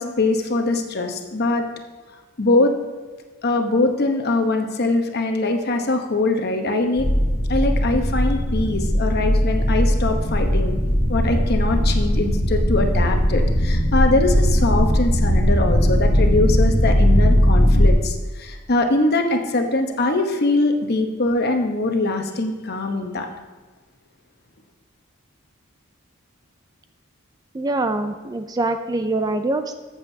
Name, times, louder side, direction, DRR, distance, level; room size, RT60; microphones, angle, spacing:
voice 1, 0.0-1.7 2.4-2.7 3.4-7.1 7.5-10.7 11.1-23.3, left 2 dB, 50° left, 4 dB, 0.9 m, -22 dB
sound 1, 7.0-17.9, equal, 80° left, 1.4 m, -18 dB
voice 2, 27.5-29.7, right 2 dB, 20° right, 8 dB, 0.3 m, -24 dB
14.0 x 7.3 x 2.7 m, 1.3 s
head